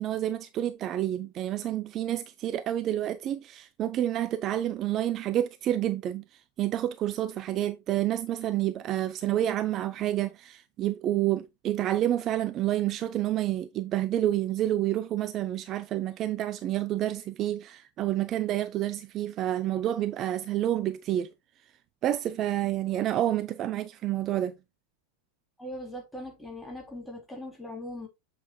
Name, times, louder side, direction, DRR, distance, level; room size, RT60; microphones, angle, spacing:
voice 1, 0.0-21.3 22.0-24.5, right 12 dB, 35° right, 0.4 m, -29 dB
voice 2, 25.6-28.1, left 1 dB, 5° left, 3.0 m, -40 dB
7.7 x 6.7 x 2.3 m
figure-of-eight pair, 90°, 0 cm